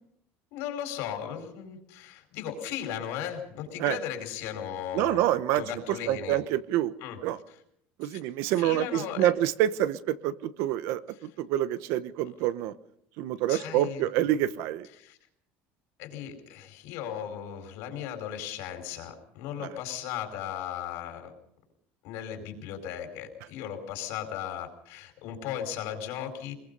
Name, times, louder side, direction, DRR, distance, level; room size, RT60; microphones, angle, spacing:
voice 1, 0.5-5.3 5.5-6.4 7.0-7.2 7.5-7.6 8.0-8.2 8.6-9.3 13.5-14.0 15.0-15.2 16.0-21.3 22.0-26.5, left 9 dB, 65° left, 6 dB, 4.7 m, -36 dB
voice 2, 4.9-6.9 7.2-7.4 8.0-12.7 13.2-14.9, right 13 dB, 60° right, 14 dB, 1.0 m, -27 dB
24.5 x 21.5 x 5.5 m, 0.72 s
cardioid pair, 175°, 5 cm